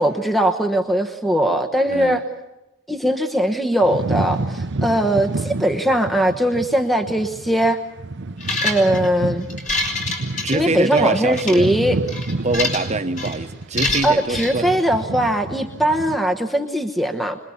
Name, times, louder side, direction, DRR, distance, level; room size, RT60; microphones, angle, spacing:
voice 1, 0.0-2.2 2.9-7.8 8.6-9.5 10.5-12.0 14.0-17.4, right 1 dB, ahead, 6 dB, 1.0 m, -20 dB
voice 2, 1.9-2.2 10.4-11.7 12.4-14.7, right 3 dB, 35° right, 8 dB, 1.1 m, -24 dB
sound 1, 3.8-16.2, right 2 dB, 60° right, 0.8 m, -29 dB
Medieval Sword Equipment, 8.4-9.1 9.5-11.0 11.3-11.6 12.1-12.9 13.2-13.4 13.8-14.5, left 2 dB, 40° left, 5.0 m, -25 dB
26.0 x 21.5 x 7.1 m, 0.99 s
head